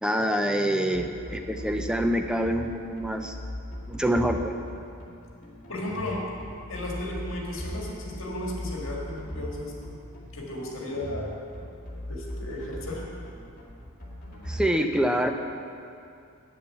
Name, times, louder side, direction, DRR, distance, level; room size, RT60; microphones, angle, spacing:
voice 1, 0.0-3.4 3.9-4.5 14.5-15.3, equal, 5° right, 5 dB, 0.5 m, -26 dB
sound 1, 0.9-14.6, equal, 40° left, 2.2 m, -38 dB
voice 2, 5.7-6.3 6.7-9.7 10.3-11.3 12.1-13.0, left 1 dB, 60° left, -3 dB, 2.0 m, -34 dB
8.8 x 7.5 x 7.2 m, 2.5 s
head